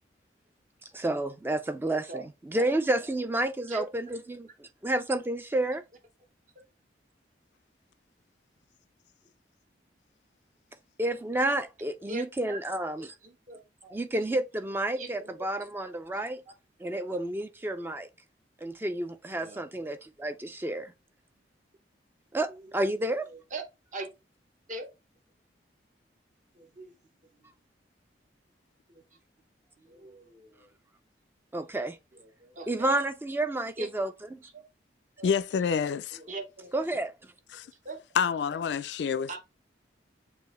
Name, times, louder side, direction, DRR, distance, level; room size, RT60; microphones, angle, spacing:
voice 1, 0.9-2.2 2.5-5.8 11.0-13.1 13.9-16.4 16.8-18.1 18.6-20.9 22.3-23.3 31.5-32.0 32.7-34.4 36.7-37.1, right 1 dB, 10° right, 0.3 m, -30 dB
voice 2, 12.1-12.6 13.0-14.0 14.9-15.7 16.1-16.5 19.4-19.6 22.5-23.6 23.9-24.1 24.7-24.9 26.5-27.0 27.3-27.5 28.9-29.2 29.8-30.7 31.7-31.8 32.2-32.9 33.8-33.9 34.4-34.6 35.2-35.3 36.1-36.7 37.8-38.0 39.3-39.4, right 3 dB, 45° right, 0.8 m, -42 dB
voice 3, 35.2-36.2 37.5-37.7 38.2-39.4, left 6 dB, 70° left, 0.3 m, -28 dB
6.7 x 2.6 x 3.0 m
head